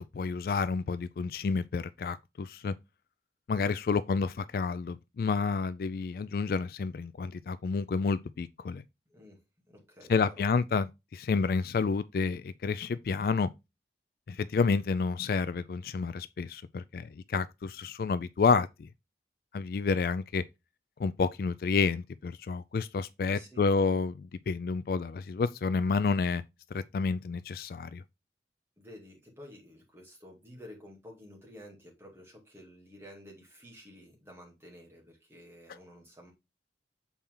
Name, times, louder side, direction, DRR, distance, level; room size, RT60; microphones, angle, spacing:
voice 1, 0.0-2.7 3.5-8.8 10.1-13.5 14.3-18.9 19.5-20.4 21.0-26.4 26.7-28.0, left 4 dB, 55° left, 0.3 m, -29 dB
voice 2, 9.7-10.5 23.3-23.7 28.8-36.3, equal, 15° right, 2.2 m, -51 dB
7.0 x 4.3 x 3.7 m
head